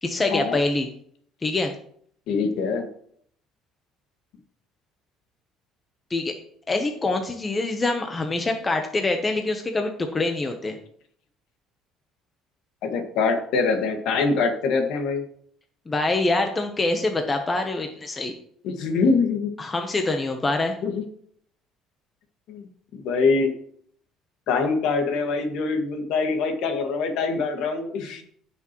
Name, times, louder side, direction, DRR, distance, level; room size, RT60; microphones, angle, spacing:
voice 1, 0.0-0.9 1.4-1.7 6.1-6.3 6.7-10.8 15.9-18.3 19.6-20.7, left 2 dB, 20° left, 5 dB, 0.9 m, -25 dB
voice 2, 2.3-2.9 12.8-15.2 18.6-19.5 20.8-21.0 22.5-22.7 22.9-23.5 24.5-28.2, left 4 dB, 70° left, 5 dB, 1.8 m, -24 dB
15.5 x 6.0 x 3.1 m, 0.62 s
cardioid pair, 140°, 0 cm